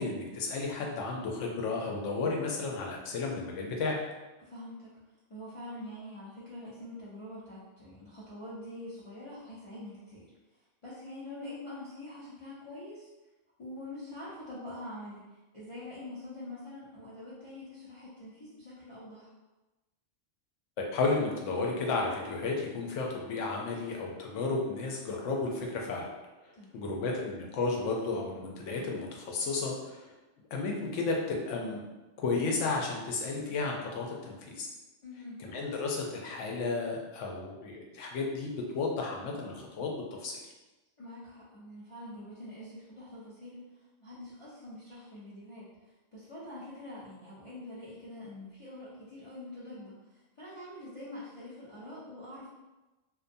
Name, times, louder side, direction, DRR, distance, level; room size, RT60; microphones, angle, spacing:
voice 1, 0.0-4.0 20.8-26.1 26.7-30.1 30.5-31.8 32.2-34.7 35.4-40.3, left 3 dB, 85° left, 0 dB, 0.9 m, -33 dB
voice 2, 4.4-4.9 5.3-10.3 10.8-13.1 13.6-19.3 26.6-27.0 35.0-35.4 41.0-52.5, left 1 dB, 50° left, -9 dB, 0.4 m, -45 dB
2.5 x 2.2 x 2.5 m, 1.1 s
omnidirectional pair, 1.2 m